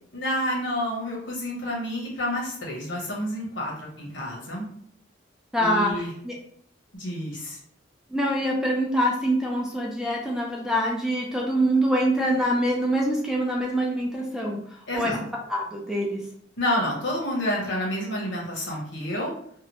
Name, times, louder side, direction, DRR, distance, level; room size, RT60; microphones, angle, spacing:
voice 1, 0.1-4.7 5.6-6.1 7.0-7.6 14.9-15.2 16.6-19.3, left 1 dB, 75° left, -3 dB, 1.0 m, -29 dB
voice 2, 5.5-6.4 8.1-14.6 14.9-15.1 15.5-16.2, equal, 5° right, -2 dB, 0.4 m, -25 dB
2.8 x 2.1 x 2.9 m, 0.64 s
head